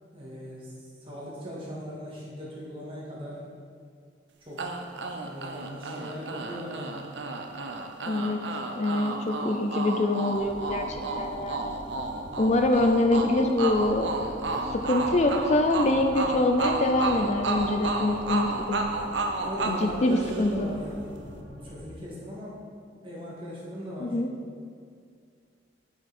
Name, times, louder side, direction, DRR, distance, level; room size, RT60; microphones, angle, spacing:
voice 1, 0.1-0.7 1.0-3.4 4.4-4.7 5.2-7.0 19.4-21.2 21.6-22.6 23.0-24.2, equal, 30° right, -6 dB, 2.1 m, -38 dB
sound 1, 4.6-20.8, right 3 dB, 80° right, 0.7 m, -32 dB
voice 2, 8.1-8.4 8.8-11.7 12.4-14.1 14.7-18.8 19.7-20.7 24.0-24.3, left 2 dB, 40° left, 5 dB, 0.4 m, -25 dB
sound 2, 10.3-21.8, equal, 10° left, 2.0 m, -44 dB
8.8 x 5.8 x 4.3 m, 2.2 s
head